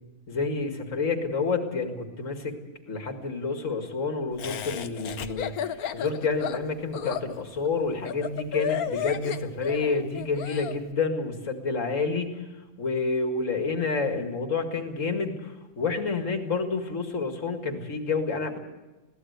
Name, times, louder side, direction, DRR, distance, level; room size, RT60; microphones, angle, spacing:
voice 1, 0.3-2.6 2.9-12.3 12.8-18.6, left 4 dB, 60° left, 5 dB, 2.4 m, -29 dB
Laughter, 4.4-10.8, left 8 dB, 90° left, 1.4 m, -33 dB
21.5 x 17.0 x 8.1 m, 1.1 s
omnidirectional pair, 1.5 m